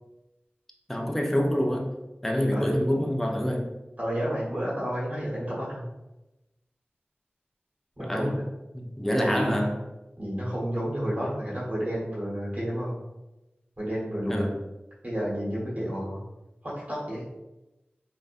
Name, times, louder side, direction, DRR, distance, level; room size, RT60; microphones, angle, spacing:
voice 1, 0.9-1.9 2.2-3.7 8.0-8.4 8.7-9.8 14.3-14.6, equal, 5° left, 1 dB, 0.3 m, -26 dB
voice 2, 4.0-5.8 8.0-8.4 9.1-9.6 10.2-12.9 13.8-14.5 15.0-16.2 16.6-17.2, equal, 40° right, -7 dB, 1.2 m, -30 dB
2.4 x 2.1 x 2.5 m, 0.98 s
wide cardioid pair, 75°, 4 cm